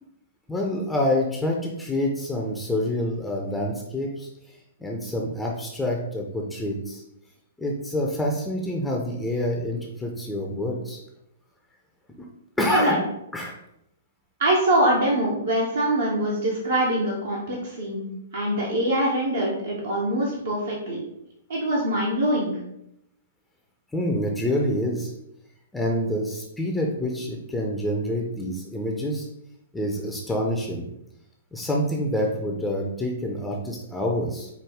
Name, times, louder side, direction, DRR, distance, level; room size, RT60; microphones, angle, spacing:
voice 1, 0.5-4.3 4.8-7.0 7.6-11.0 12.6-13.0 13.3-13.5 23.9-25.1 25.7-29.3 29.7-30.9 31.5-34.5, left 1 dB, 5° left, -1 dB, 0.5 m, -27 dB
voice 2, 12.7-13.0 14.4-18.0 18.3-21.0 21.5-22.5, right 1 dB, 65° right, -4 dB, 0.9 m, -23 dB
4.7 x 2.3 x 3.5 m, 0.80 s
figure-of-eight pair, 115°, 0 cm